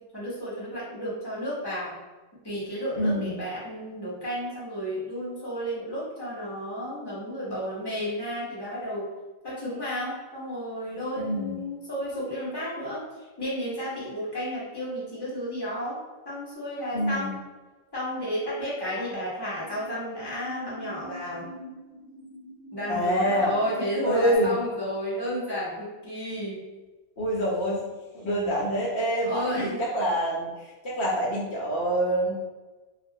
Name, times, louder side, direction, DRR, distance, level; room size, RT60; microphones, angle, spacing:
voice 1, 0.1-2.0 2.4-9.1 9.4-16.0 16.2-17.3 17.9-21.5 22.7-26.6 29.2-29.8, equal, 25° left, -8 dB, 0.6 m, -32 dB
voice 2, 3.0-3.4 11.2-11.6 16.9-17.3 22.9-23.5 24.1-24.5 27.2-27.8 28.1-32.3, equal, 60° left, -5 dB, 0.8 m, -26 dB
sound 1, 16.5-17.1 18.8-19.8 20.2-24.4, right 1 dB, 80° left, 1.1 m, -46 dB
2.3 x 2.1 x 2.6 m, 1.2 s
omnidirectional pair, 1.4 m